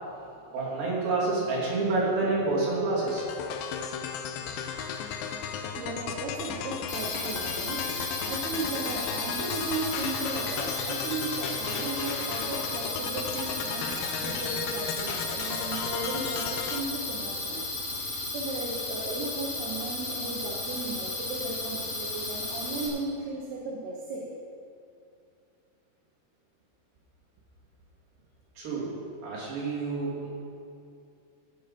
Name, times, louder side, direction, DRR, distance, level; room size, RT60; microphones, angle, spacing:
voice 1, 0.5-3.2 28.6-28.9 29.2-30.3, right 3 dB, 65° right, -7 dB, 4.5 m, -28 dB
sound 1, 3.1-16.8, left 7 dB, 80° left, 2.2 m, -35 dB
voice 2, 5.8-7.9 8.3-24.3, right 2 dB, 80° right, -3 dB, 3.2 m, -36 dB
sound 2, 6.9-22.9, left 2 dB, 45° left, 2.8 m, -34 dB
13.0 x 8.3 x 5.3 m, 2.5 s
omnidirectional pair, 4.6 m